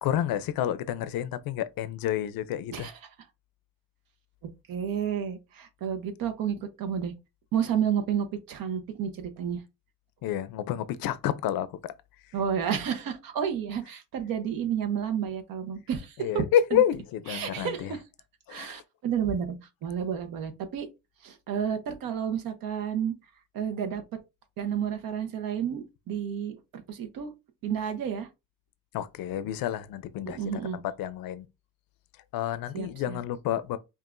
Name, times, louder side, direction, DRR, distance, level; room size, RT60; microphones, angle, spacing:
voice 1, 0.0-2.9 10.2-11.9 16.2-17.9 18.5-18.8 28.9-31.5 32.3-33.8, left 10 dB, 85° left, 0.5 m, -29 dB
voice 2, 4.7-7.1 7.5-9.6 12.3-16.4 16.7-16.8 17.3-18.0 18.5-19.6 19.8-20.9 21.2-23.1 23.5-24.0 24.6-26.5 26.9-27.3 27.6-28.3 30.2-30.8 32.7-33.2, right 8 dB, 80° right, 1.0 m, -31 dB
5.4 x 2.5 x 2.5 m
cardioid pair, 120°, 34 cm